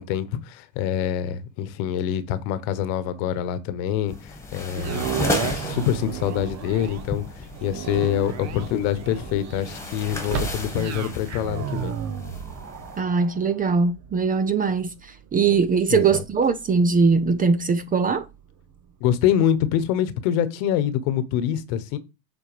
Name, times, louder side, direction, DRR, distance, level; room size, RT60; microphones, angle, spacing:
voice 1, 0.0-11.9 15.9-16.2 19.0-22.0, left 10 dB, 65° left, 1.2 m, -25 dB
sound 1, 4.1-13.0, left 2 dB, 5° left, 1.8 m, -34 dB
sound 2, 4.7-18.9 19.4-19.5, right 9 dB, 40° right, 1.0 m, -35 dB
sound 3, 10.2-11.1, right 6 dB, 65° right, 1.6 m, -32 dB
voice 2, 13.0-14.9 15.3-18.3, right 5 dB, 20° right, 0.6 m, -21 dB
7.8 x 4.3 x 5.0 m
supercardioid pair, 120°, 43 cm